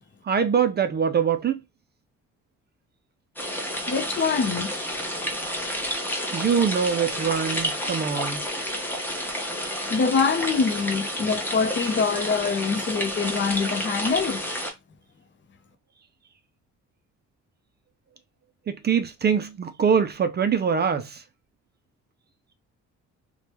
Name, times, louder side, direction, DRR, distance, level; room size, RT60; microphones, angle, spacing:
voice 1, 0.2-1.6 6.3-8.5 18.7-21.2, right 7 dB, 35° right, 0.4 m, -23 dB
sound 1, 3.4-14.7, equal, 5° left, 0.9 m, -30 dB
voice 2, 3.9-4.7 9.9-14.4, left 5 dB, 40° left, 0.6 m, -24 dB
3.1 x 2.2 x 2.8 m
cardioid pair, 90°, 30 cm